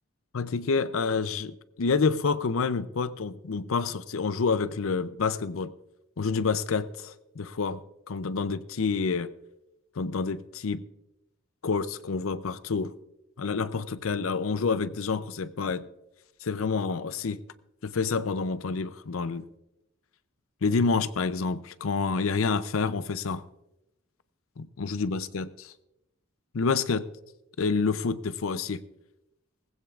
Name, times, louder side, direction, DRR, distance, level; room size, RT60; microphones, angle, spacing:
voice 1, 0.3-5.7 6.2-7.8 8.1-9.3 10.0-10.8 11.6-12.9 13.4-15.9 16.4-17.4 17.8-19.4 20.6-23.4 24.6-25.5 26.5-27.1 27.6-28.8, left 4 dB, 85° left, 0.6 m, -28 dB
19.5 x 15.5 x 2.4 m
head